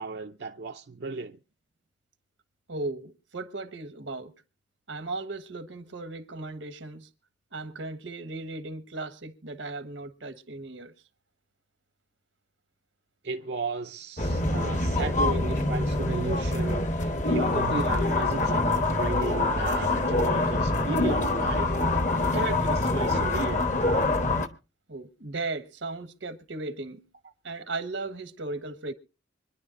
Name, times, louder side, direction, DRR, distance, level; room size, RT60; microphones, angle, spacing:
voice 1, 0.0-1.4 13.2-21.7 22.2-23.7 27.2-27.3, right 3 dB, 60° right, 0.6 m, -35 dB
voice 2, 2.7-4.3 4.9-7.1 7.5-10.9 24.9-27.1 27.4-28.9, right 3 dB, 85° right, 1.3 m, -36 dB
sound 1, 14.2-24.5, left 2 dB, 40° left, 1.1 m, -25 dB
25.5 x 10.5 x 2.6 m
head